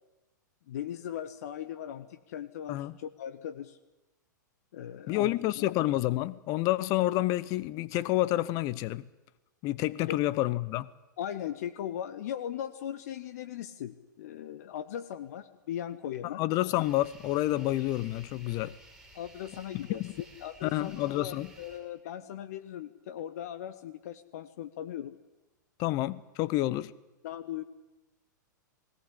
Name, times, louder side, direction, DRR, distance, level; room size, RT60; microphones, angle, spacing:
voice 1, 0.7-3.8 4.7-5.6 10.1-10.2 11.2-16.4 19.1-20.0 20.4-25.2 27.2-27.6, left 10 dB, 55° left, 1.2 m, -39 dB
voice 2, 5.1-9.1 9.6-10.9 16.4-18.8 19.9-20.1 20.6-21.5 25.8-26.9, left 16 dB, 35° left, 0.9 m, -29 dB
sound 1, 16.8-21.8, right 1 dB, 10° right, 6.5 m, -55 dB
19.5 x 18.0 x 9.9 m
figure-of-eight pair, 100°, 10 cm